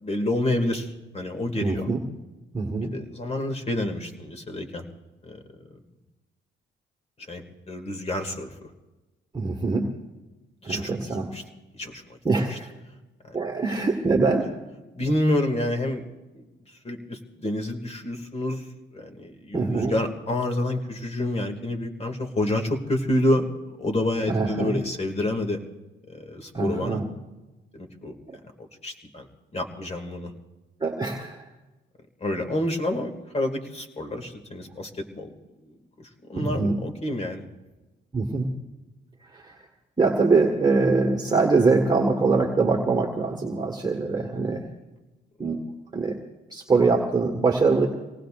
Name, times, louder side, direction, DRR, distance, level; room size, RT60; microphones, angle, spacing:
voice 1, 0.0-1.9 2.9-4.8 5.2-5.4 7.3-8.5 10.6-10.9 11.3-11.4 11.7-12.2 13.2-13.4 14.9-16.0 16.3-16.5 16.8-18.6 18.9-25.6 26.1-27.0 27.7-28.2 28.6-29.3 29.5-30.3 32.2-34.9 35.1-35.3 35.7-37.4, left 1 dB, 30° left, 5 dB, 2.3 m, -28 dB
voice 2, 1.6-2.0 2.5-2.9 9.3-9.9 10.6-11.3 12.2-12.7 13.3-14.5 19.5-19.9 24.3-24.8 26.5-27.1 28.3-28.4 30.8-31.4 36.3-36.8 38.1-38.5 39.2-39.6 40.0-44.7 45.4-46.2 46.5-47.9, right 3 dB, 20° right, 0 dB, 1.7 m, -23 dB
26.0 x 19.0 x 2.5 m, 1.1 s
cardioid pair, 90°, 20 cm